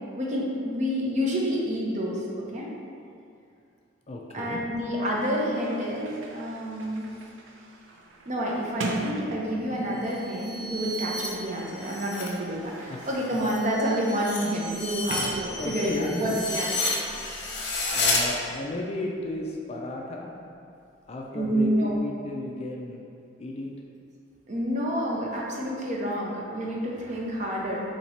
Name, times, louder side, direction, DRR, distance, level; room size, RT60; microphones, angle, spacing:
voice 1, 0.1-2.2 2.5-2.7 4.3-7.1 8.3-17.0 21.3-22.0 24.5-27.8, equal, 35° right, -3 dB, 0.6 m, -28 dB
voice 2, 4.1-4.6 12.9-13.0 15.6-16.4 16.8-16.9 17.9-20.3 21.1-23.0 23.4-23.7, left 1 dB, 30° left, -1 dB, 0.3 m, -34 dB
Sliding door, 5.1-10.2 11.1-16.1, right 2 dB, 75° right, 0.5 m, -40 dB
sound 1, 9.9-12.4 12.7-18.2, left 2 dB, 55° left, 0.8 m, -32 dB
4.2 x 2.9 x 4.2 m, 2.5 s
head